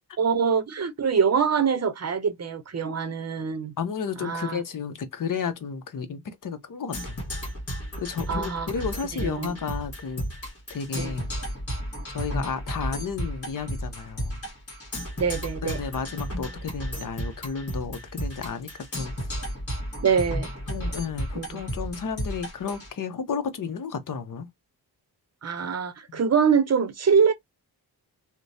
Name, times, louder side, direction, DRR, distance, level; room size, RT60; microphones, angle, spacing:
voice 1, 0.2-3.7 4.2-4.6 8.3-8.7 9.2-9.6 11.0-11.1 15.2-15.8 20.0-20.5 21.3-21.6 25.4-27.3, right 6 dB, 40° right, 0.7 m, -24 dB
voice 2, 3.8-7.2 8.0-10.2 10.7-11.3 12.1-14.4 15.6-19.3 20.7-24.5 26.1-26.2, left 6 dB, 50° left, 0.8 m, -32 dB
Percussion, 6.9-22.9, equal, 35° left, 1.5 m, -33 dB
3.0 x 2.1 x 2.6 m
cardioid pair, 75°, 40 cm